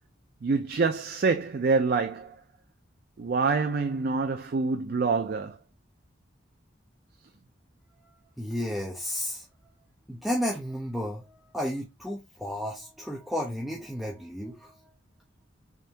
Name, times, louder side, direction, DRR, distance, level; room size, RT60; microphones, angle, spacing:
voice 1, 0.4-2.4 3.2-5.6, right 4 dB, 50° right, 0.4 m, -26 dB
voice 2, 8.4-9.4 10.1-14.8, equal, ahead, 0.6 m, -32 dB
3.6 x 3.4 x 2.7 m
head